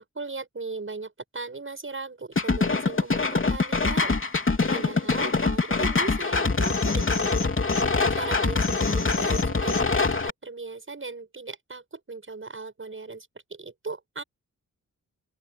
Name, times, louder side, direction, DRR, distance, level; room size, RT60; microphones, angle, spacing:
voice 1, 0.0-4.2 4.7-7.5 8.1-14.2, right 3 dB, 40° right, 7.6 m, -38 dB
sound 1, 2.4-10.3, left 3 dB, 40° left, 3.1 m, -24 dB
open air
wide cardioid pair, 85°, 33 cm